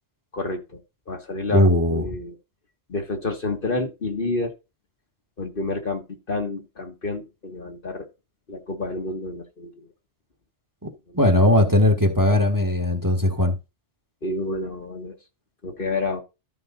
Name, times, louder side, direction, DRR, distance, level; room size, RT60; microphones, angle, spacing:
voice 1, 0.3-0.8 1.1-2.4 2.9-4.5 5.4-8.1 8.5-9.7 11.1-11.4 14.2-15.2 15.6-16.2, left 3 dB, 50° left, 1.8 m, -29 dB
voice 2, 1.5-2.0 11.1-13.5, left 1 dB, 15° right, 1.8 m, -18 dB
13.0 x 5.2 x 4.0 m
omnidirectional pair, 1.2 m